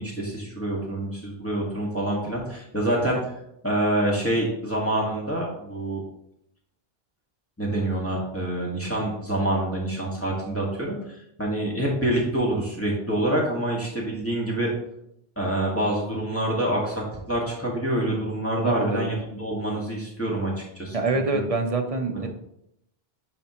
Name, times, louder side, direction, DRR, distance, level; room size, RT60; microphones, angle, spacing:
voice 1, 0.0-3.4 3.6-6.0 7.6-11.0 11.4-14.7 15.4-21.0 21.3-21.4, right 1 dB, 15° left, -4 dB, 1.6 m, -26 dB
voice 2, 18.6-19.1 20.9-22.3, right 3 dB, 40° right, 5 dB, 0.7 m, -26 dB
10.0 x 4.1 x 2.9 m, 0.78 s
omnidirectional pair, 1.1 m